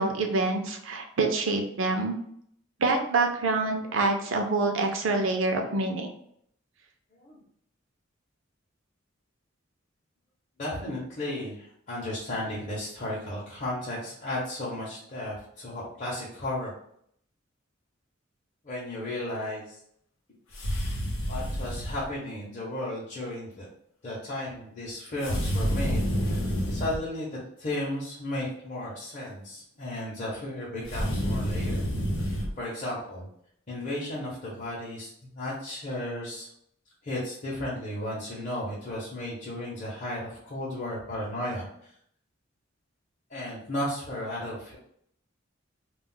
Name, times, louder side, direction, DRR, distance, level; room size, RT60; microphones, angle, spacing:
voice 1, 0.0-2.2 2.8-6.1, right 3 dB, 70° right, 4 dB, 0.5 m, -26 dB
voice 2, 10.6-16.7 18.6-19.8 21.3-23.7 24.0-31.8 32.2-33.3 33.7-35.1 35.3-36.5 37.0-41.9 43.3-44.8, left 1 dB, 40° left, -7 dB, 0.7 m, -34 dB
sound 1, 20.5-22.0 25.2-27.0 30.8-32.5, equal, 85° left, 0.7 m, -28 dB
2.3 x 2.0 x 3.7 m, 0.68 s
head